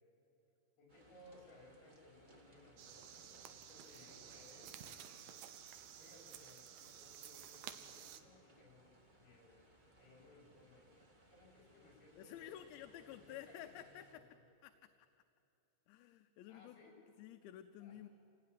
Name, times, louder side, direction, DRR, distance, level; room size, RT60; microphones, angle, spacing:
voice 1, 0.8-5.4 6.0-9.6 10.0-10.9 11.3-14.4 16.5-16.9 17.8-18.0, left 2 dB, 60° left, -2 dB, 7.5 m, -63 dB
sound 1, 0.9-14.1, right 1 dB, 30° right, 0.8 m, -66 dB
sound 2, 2.8-8.2, right 10 dB, 70° right, 2.3 m, -53 dB
voice 2, 12.2-14.2 14.6-14.9 15.9-16.8 17.2-18.1, left 12 dB, 85° left, 8 dB, 2.9 m, -52 dB
27.5 x 18.0 x 9.7 m, 2.7 s
omnidirectional pair, 5.1 m